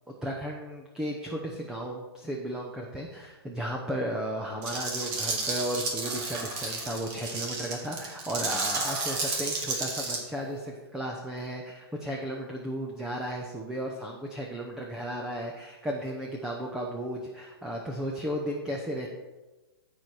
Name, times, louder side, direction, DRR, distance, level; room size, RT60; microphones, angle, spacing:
voice 1, 0.2-19.1, equal, 5° right, 0 dB, 0.8 m, -34 dB
sound 1, 4.6-10.2, right 3 dB, 35° right, 2.1 m, -32 dB
14.5 x 4.9 x 4.5 m, 1.2 s
hypercardioid pair, 145°, 14 cm